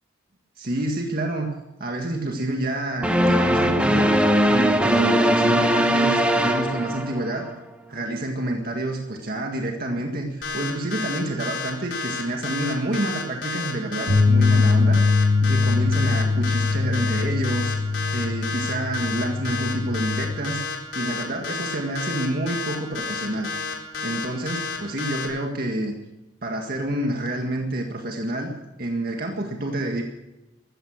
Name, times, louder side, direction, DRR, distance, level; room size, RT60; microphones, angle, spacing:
voice 1, 0.6-1.5 1.8-4.1 4.5-7.5 7.9-17.7 18.1-23.5 24.0-25.9 26.4-28.5 28.8-30.0, right 1 dB, 50° right, 2 dB, 1.8 m, -28 dB
sound 1, 3.0-7.5, equal, 5° right, 1.3 m, -20 dB
sound 2, 10.4-25.3, left 4 dB, 70° left, 4.1 m, -30 dB
sound 3, 14.1-20.3, left 3 dB, 75° right, 4.1 m, -22 dB
15.0 x 14.5 x 6.4 m, 0.99 s
head